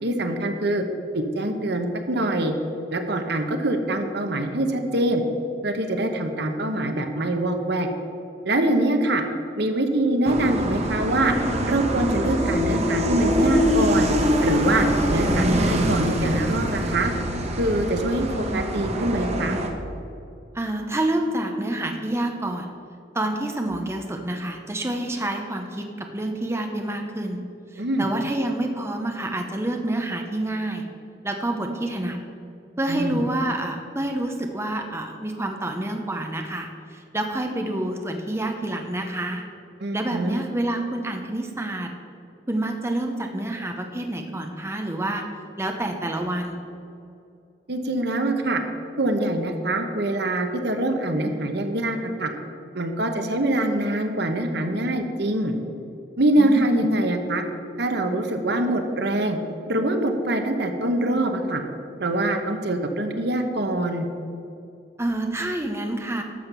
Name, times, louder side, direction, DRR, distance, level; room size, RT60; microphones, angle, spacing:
voice 1, 0.0-0.8 1.1-2.5 2.9-5.2 5.6-7.9 8.4-9.2 9.6-14.1 14.4-17.1 17.6-19.6 27.8-28.1 32.9-33.3 39.8-40.4 47.7-48.6 49.0-52.3 52.7-55.5 56.2-57.4 57.8-59.4 59.7-61.6 62.0-64.1, right 1 dB, 65° right, 6 dB, 1.1 m, -24 dB
sound 1, 10.2-19.7, equal, 40° right, 1.2 m, -24 dB
voice 2, 20.5-22.7 23.1-27.5 27.7-30.9 31.2-32.2 32.8-39.5 39.9-41.9 42.5-45.3 45.6-46.7 56.4-56.9 65.0-66.2, right 1 dB, 15° right, 4 dB, 0.8 m, -28 dB
12.5 x 7.3 x 6.1 m, 2.7 s
head